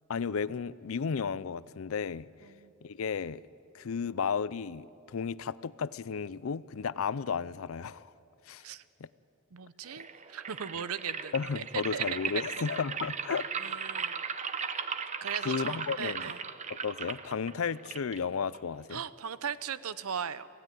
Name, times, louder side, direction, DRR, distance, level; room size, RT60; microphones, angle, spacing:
voice 1, 0.1-2.3 2.8-3.4 3.7-8.1 8.5-8.6 9.0-9.1 11.3-13.9 15.4-16.3 16.8-19.0, left 6 dB, 70° left, 19 dB, 0.5 m, -33 dB
voice 2, 9.5-11.6 11.9-12.1 12.3-12.6 13.6-14.3 15.2-16.4 18.9-20.5, right 7 dB, 90° right, 15 dB, 0.7 m, -38 dB
sound 1, 9.9-18.9, right 6 dB, 35° right, 0.8 m, -37 dB
26.5 x 15.5 x 9.3 m, 2.9 s
head